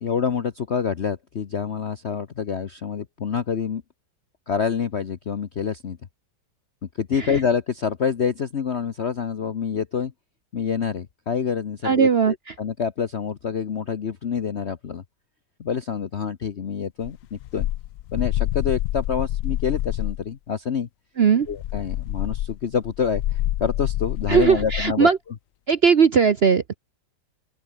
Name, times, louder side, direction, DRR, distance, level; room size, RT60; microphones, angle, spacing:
voice 1, 0.0-3.8 4.5-6.0 7.0-10.1 10.5-15.0 15.6-17.7 18.1-20.9 21.5-25.1, left 6 dB, 45° left, 1.1 m, -27 dB
voice 2, 11.8-12.3 21.2-21.5 24.3-25.2 25.7-26.8, right 6 dB, 50° right, 0.7 m, -18 dB
sound 1, 17.0-20.3 21.5-24.9, left 14 dB, 75° left, 0.7 m, -27 dB
open air
omnidirectional pair, 2.0 m